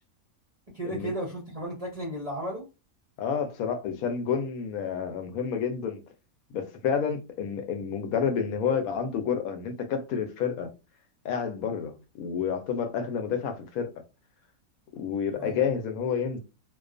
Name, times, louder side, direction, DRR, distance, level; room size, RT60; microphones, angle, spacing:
voice 1, 0.7-2.7 15.3-15.6, right 1 dB, 45° right, 0.5 m, -34 dB
voice 2, 3.2-6.0 6.5-10.7 11.2-13.9 14.9-16.4, left 7 dB, 75° left, 1.0 m, -29 dB
2.4 x 2.2 x 2.4 m
omnidirectional pair, 1.5 m